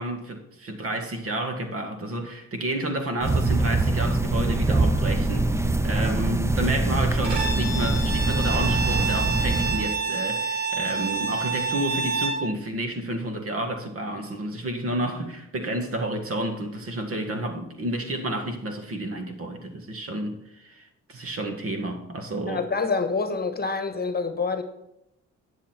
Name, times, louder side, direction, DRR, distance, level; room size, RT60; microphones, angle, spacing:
voice 1, 0.0-22.7, right 1 dB, 50° right, 1.9 m, -30 dB
sound 1, 3.2-9.9, right 2 dB, 10° right, 0.6 m, -23 dB
Bowed string instrument, 7.2-12.5, right 4 dB, 80° right, 4.1 m, -28 dB
voice 2, 22.5-24.6, left 4 dB, 30° left, 1.3 m, -26 dB
10.0 x 7.3 x 4.4 m
cardioid pair, 90°, 30 cm